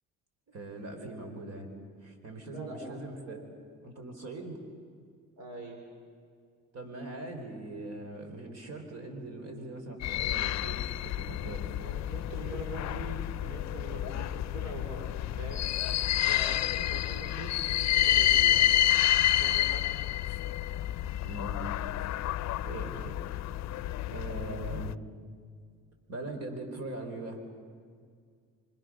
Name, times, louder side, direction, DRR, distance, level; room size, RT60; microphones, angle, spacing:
voice 1, 0.5-1.7 2.0-3.4 3.8-4.6 6.7-11.7 21.2-21.6 22.7-23.3 24.1-24.9 26.1-27.4, right 2 dB, 55° right, 4 dB, 4.7 m, -41 dB
voice 2, 2.5-3.0 3.3-3.5 5.4-5.8 11.7-15.7 16.3-18.6 19.4-20.0, right 2 dB, 75° right, 2 dB, 3.9 m, -43 dB
sound 1, 10.0-24.9, left 12 dB, 65° left, 0.5 m, -29 dB
27.5 x 25.0 x 6.5 m, 2.1 s
cardioid pair, 90°, 30 cm